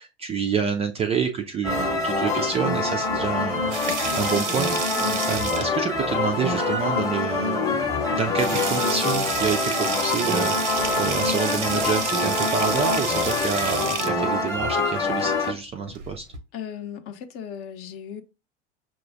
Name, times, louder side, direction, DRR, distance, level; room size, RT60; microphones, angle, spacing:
voice 1, 0.0-5.0 5.3-16.2, right 6 dB, 20° right, 0.4 m, -28 dB
sound 1, 1.6-15.5, left 3 dB, 10° left, 0.9 m, -25 dB
sound 2, 3.5-5.9 7.3-7.4 7.8-7.9 8.3-14.1 15.8-16.4, right 5 dB, 80° right, 0.7 m, -30 dB
voice 2, 16.5-18.2, left 9 dB, 40° left, 0.7 m, -36 dB
6.0 x 2.3 x 2.5 m
figure-of-eight pair, 80°, 35 cm